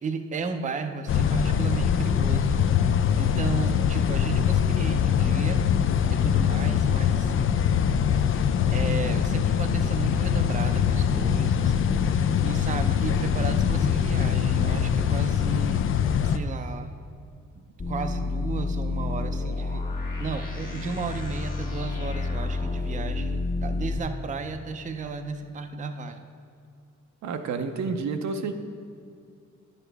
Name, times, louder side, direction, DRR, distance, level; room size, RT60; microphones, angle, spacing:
voice 1, 0.0-2.6 3.2-5.6 6.1-7.6 8.7-15.8 16.2-16.9 17.9-19.9 20.2-26.2, right 5 dB, 25° right, 6 dB, 0.5 m, -34 dB
sound 1, 1.1-16.4, left 8 dB, 45° left, 0.4 m, -23 dB
sound 2, 17.8-24.0, left 3 dB, 30° left, 1.6 m, -30 dB
voice 2, 27.2-28.6, right 4 dB, 65° right, 7 dB, 0.6 m, -29 dB
9.8 x 6.5 x 3.4 m, 2.4 s
cardioid pair, 90°, 30 cm